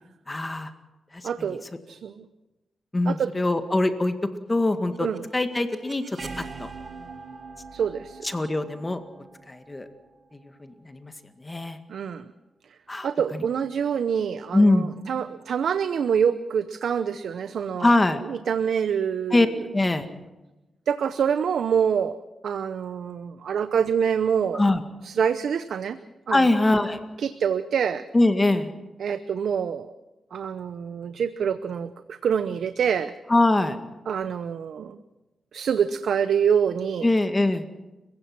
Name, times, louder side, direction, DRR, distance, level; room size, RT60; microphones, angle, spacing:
voice 1, 0.3-0.7 1.1-1.3 2.9-4.1 4.5-6.7 8.2-9.0 9.5-9.9 10.6-11.1 11.4-11.8 12.9-13.4 14.5-14.9 17.8-18.2 19.3-19.5 19.7-20.1 24.5-24.8 26.3-27.0 28.1-28.7 33.3-33.8 37.0-37.6, left 2 dB, 25° left, 8 dB, 1.9 m, -22 dB
voice 2, 1.2-2.3 3.0-3.3 5.0-5.2 7.7-8.3 11.9-12.2 13.0-17.9 18.2-19.5 20.9-24.6 25.0-26.0 26.3-26.5 27.2-28.0 29.0-29.9 30.3-33.1 34.1-35.0 35.5-37.1, right 7 dB, 80° right, 12 dB, 0.7 m, -26 dB
sound 1, 4.7-10.6, right 4 dB, 50° right, 2.2 m, -43 dB
29.5 x 16.0 x 6.1 m, 1.1 s
cardioid pair, 75°, 0 cm